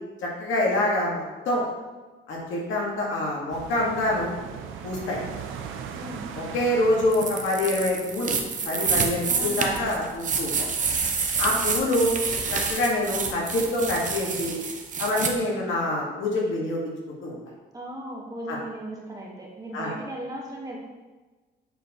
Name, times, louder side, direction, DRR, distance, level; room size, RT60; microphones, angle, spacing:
voice 1, 0.2-1.6 2.3-4.3 4.8-5.2 6.4-8.3 8.6-10.5 11.4-12.1 12.5-14.5 15.0-17.4 18.5-18.6 19.7-19.9, left 1 dB, 75° left, -3 dB, 1.8 m, -26 dB
sound 1, 3.5-8.7, right 7 dB, 85° right, 0.6 m, -39 dB
voice 2, 5.9-6.3 9.3-9.9 11.5-11.8 15.3-15.6 17.7-20.8, right 1 dB, 20° right, -3 dB, 1.6 m, -37 dB
sound 2, 7.1-15.3, right 5 dB, 40° right, 0.8 m, -28 dB
7.9 x 4.3 x 3.0 m, 1.3 s
cardioid pair, 90°, 20 cm